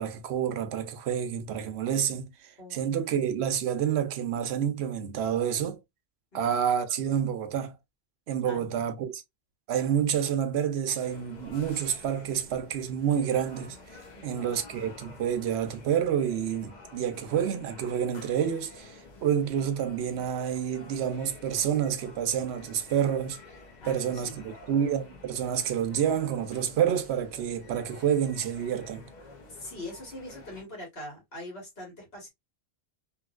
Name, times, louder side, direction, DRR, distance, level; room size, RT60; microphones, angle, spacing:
voice 1, 0.0-5.8 6.3-7.7 8.3-9.2 9.7-23.4 23.8-29.0, right 9 dB, 85° right, 0.8 m, -28 dB
voice 2, 8.4-8.9 14.1-14.4 23.8-24.4 29.5-32.3, left 1 dB, 65° left, 1.9 m, -42 dB
sound 1, 11.0-30.6, left 3 dB, 45° left, 0.9 m, -50 dB
3.3 x 2.6 x 2.3 m
omnidirectional pair, 1.1 m